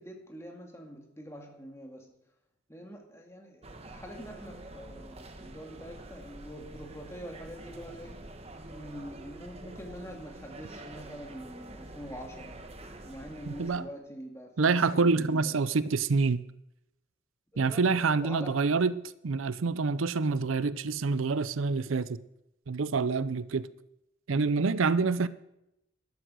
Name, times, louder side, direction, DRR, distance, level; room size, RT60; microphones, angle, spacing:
voice 1, 0.0-2.1 2.7-8.3 8.7-12.6 13.0-15.8 17.7-18.6, equal, 15° left, 2.2 m, -45 dB
sound 1, 3.6-13.8, right 2 dB, 30° right, 1.3 m, -47 dB
voice 2, 14.6-16.4 17.6-22.2 22.7-23.7 24.3-25.3, right 4 dB, 85° right, 0.6 m, -27 dB
12.5 x 12.0 x 6.3 m
head